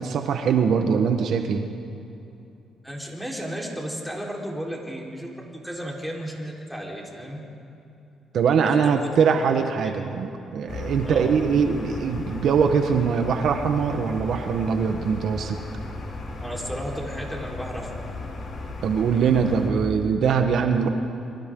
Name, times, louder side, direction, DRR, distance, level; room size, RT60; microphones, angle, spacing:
voice 1, 0.0-1.7 8.3-15.6 18.8-20.9, right 6 dB, 70° right, 5 dB, 1.3 m, -22 dB
voice 2, 2.8-7.4 8.6-9.1 9.8-10.0 11.0-11.3 16.4-17.9, equal, ahead, -2 dB, 4.3 m, -34 dB
sound 1, 10.7-19.7, left 2 dB, 50° left, 3.9 m, -35 dB
28.5 x 23.5 x 3.9 m, 2.8 s
cardioid pair, 95°, 0 cm